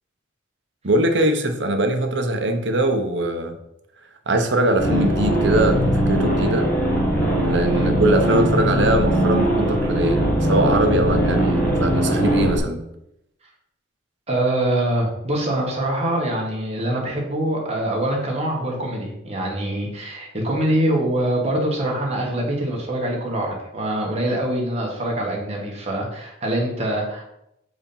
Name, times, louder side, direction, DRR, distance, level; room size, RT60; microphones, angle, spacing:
voice 1, 0.8-3.6 4.3-6.7 7.4-12.8, right 1 dB, 65° right, 6 dB, 0.9 m, -21 dB
sound 1, 4.8-12.6, equal, 10° left, 1.7 m, -20 dB
voice 2, 14.3-27.2, right 1 dB, 35° right, -2 dB, 1.6 m, -24 dB
4.8 x 4.3 x 5.5 m, 0.81 s
head